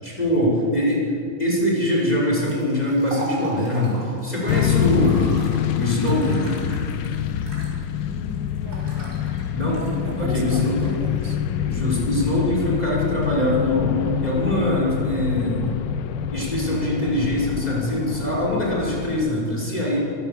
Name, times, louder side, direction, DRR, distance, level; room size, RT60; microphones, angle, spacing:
voice 1, 0.0-1.0 1.4-5.3 5.7-6.5 9.5-9.9 10.2-10.8 11.6-14.0 14.2-15.8 16.3-20.0, left 1 dB, 20° left, -4 dB, 5.6 m, -23 dB
sound 1, 1.4-14.8, right 1 dB, 50° right, 6.4 m, -40 dB
sound 2, 4.5-19.2, left 9 dB, 70° left, 1.3 m, -26 dB
voice 2, 8.1-8.9 10.0-11.4, right 3 dB, 65° right, 3 dB, 2.4 m, -36 dB
25.5 x 16.5 x 7.1 m, 2.6 s
omnidirectional pair, 2.2 m